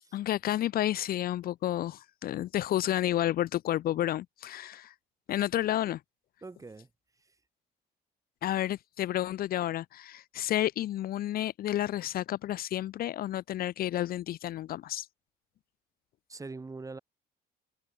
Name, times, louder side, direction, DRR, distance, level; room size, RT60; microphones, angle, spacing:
voice 1, 0.1-4.9 5.3-6.0 8.4-15.1, left 13 dB, 60° left, 0.9 m, -31 dB
voice 2, 6.4-6.9 16.3-17.0, right 3 dB, 20° right, 4.9 m, -42 dB
cardioid pair, 110°, 17 cm